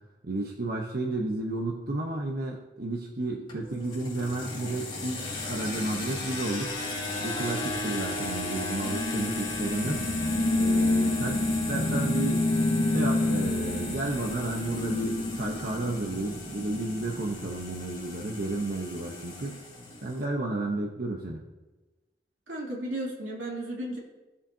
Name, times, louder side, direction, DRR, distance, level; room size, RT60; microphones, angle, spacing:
voice 1, 0.2-6.8 7.2-10.0 10.5-12.4 12.9-19.6 20.0-21.4, right 2 dB, 55° right, 0 dB, 0.9 m, -32 dB
sound 1, 3.5-20.2, left 2 dB, 25° left, 3.8 m, -36 dB
sound 2, 8.8-16.6, left 2 dB, 45° left, 1.0 m, -28 dB
voice 2, 22.5-24.0, right 1 dB, 85° right, -3 dB, 2.9 m, -34 dB
17.5 x 7.3 x 2.8 m, 1.1 s
head